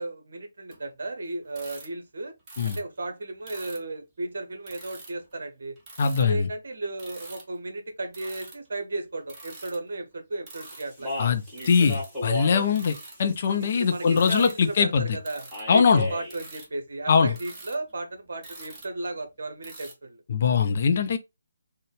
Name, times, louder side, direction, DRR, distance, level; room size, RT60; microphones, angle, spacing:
voice 1, 0.0-2.3 2.6-5.8 6.2-11.2 13.6-20.2, right 2 dB, 55° right, 0.9 m, -35 dB
sound 1, 0.7-0.8 1.4-1.9 2.5-2.8 3.5-3.8 4.7-5.3 5.8-6.4 7.0-7.4 8.1-8.7 9.2-9.8 10.5-11.0 11.5-12.1 12.7-13.2 14.1-14.5 15.2-15.7 16.2-16.7 17.3-19.3 19.6-19.9, right 2 dB, 15° right, 1.0 m, -45 dB
voice 2, 6.0-6.5 11.2-15.1 15.7-16.1 17.1-17.3 20.3-21.2, left 6 dB, 40° left, 0.5 m, -22 dB
Speech, 10.6-14.8 15.5-16.4, left 1 dB, ahead, 1.5 m, -36 dB
3.9 x 2.1 x 3.3 m
figure-of-eight pair, 145°, 0 cm